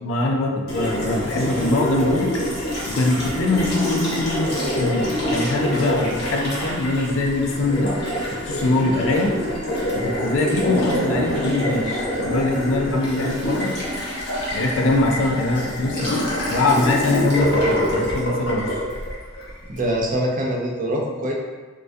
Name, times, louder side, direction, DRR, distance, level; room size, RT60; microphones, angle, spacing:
voice 1, 0.0-2.3 2.9-7.9 8.5-9.3 10.0-13.7 14.5-18.8, left 2 dB, 90° left, 1 dB, 0.4 m, -22 dB
Water tap faucet, 0.7-19.8, equal, 60° left, 0.9 m, -25 dB
voice 2, 19.7-21.3, right 1 dB, 45° right, -2 dB, 0.4 m, -24 dB
2.2 x 2.2 x 2.5 m, 1.3 s
head